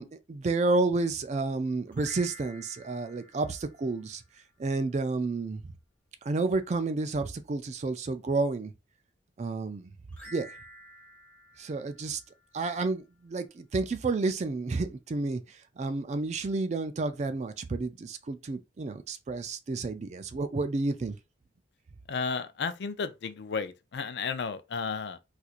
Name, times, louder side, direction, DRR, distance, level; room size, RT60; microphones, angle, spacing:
voice 1, 0.0-4.2 4.6-5.6 6.2-8.7 9.4-9.9 10.3-10.5 11.6-12.2 12.5-15.4 15.8-21.2, right 3 dB, 40° right, 0.3 m, -30 dB
sound 1, 1.9-4.4 10.1-12.7, equal, 10° left, 1.3 m, -51 dB
voice 2, 22.1-25.2, left 5 dB, 65° left, 0.4 m, -33 dB
4.3 x 2.5 x 2.4 m
head